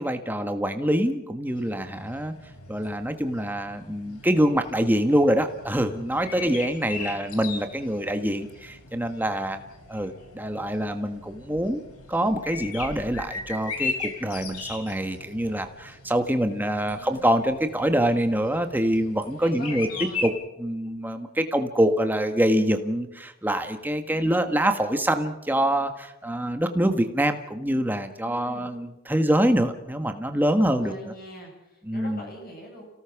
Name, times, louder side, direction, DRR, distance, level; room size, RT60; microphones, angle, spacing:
voice 1, 0.0-2.3 2.7-9.6 9.9-19.9 20.2-20.3 20.6-31.1 31.8-32.3, right 1 dB, 10° right, 7 dB, 1.5 m, -25 dB
sound 1, 1.5-20.3, left 4 dB, 85° left, 3.8 m, -39 dB
voice 2, 6.2-7.2 16.8-17.2 19.4-20.3 28.2-28.7 30.6-32.8, equal, 40° left, -1 dB, 7.4 m, -43 dB
30.0 x 17.5 x 6.0 m, 0.94 s
head